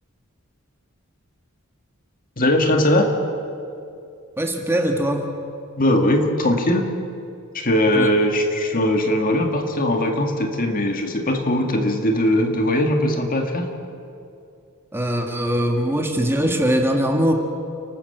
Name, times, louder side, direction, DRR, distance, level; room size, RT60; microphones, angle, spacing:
voice 1, 2.4-3.1 5.8-6.8 7.5-13.7, left 1 dB, 40° left, 4 dB, 2.0 m, -20 dB
voice 2, 4.4-5.3 7.9-8.1 14.9-17.3, equal, 10° right, 3 dB, 1.7 m, -21 dB
29.5 x 12.5 x 8.0 m, 2.5 s
head